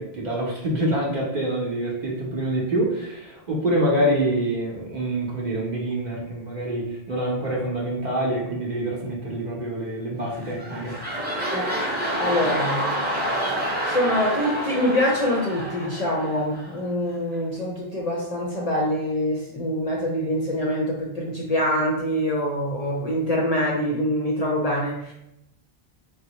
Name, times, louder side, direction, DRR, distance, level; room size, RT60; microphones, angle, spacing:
voice 1, 0.0-10.9, right 1 dB, 50° right, -2 dB, 0.7 m, -26 dB
sound 1, 10.3-16.8 17.3-17.4, equal, 10° right, 0.6 m, -28 dB
voice 2, 12.2-12.9 13.9-25.1, equal, 50° left, -3 dB, 0.5 m, -25 dB
3.7 x 2.0 x 2.8 m, 0.83 s
omnidirectional pair, 1.0 m